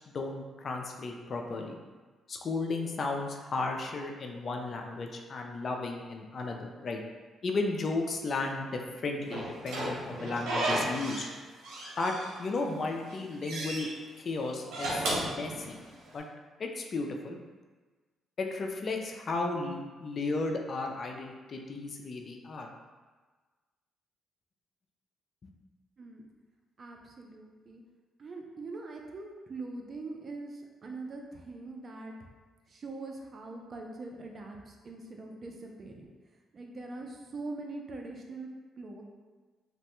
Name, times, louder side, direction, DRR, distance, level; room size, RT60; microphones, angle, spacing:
voice 1, 0.1-1.8 2.3-7.0 7.4-11.2 12.0-12.1 12.4-13.9 14.2-15.8 16.1-16.2 16.6-17.4 18.4-22.7, left 3 dB, 50° left, 2 dB, 0.4 m, -34 dB
Slam / Squeak, 9.3-11.3 11.6-12.6 13.0-13.9 14.6-16.1, right 1 dB, 80° right, 0.7 m, -34 dB
voice 2, 26.8-27.8 28.2-32.1 32.7-36.1 36.5-38.5 38.8-39.0, right 3 dB, 45° right, 1 dB, 0.4 m, -42 dB
3.1 x 2.1 x 2.9 m, 1.4 s
cardioid pair, 85°, 0 cm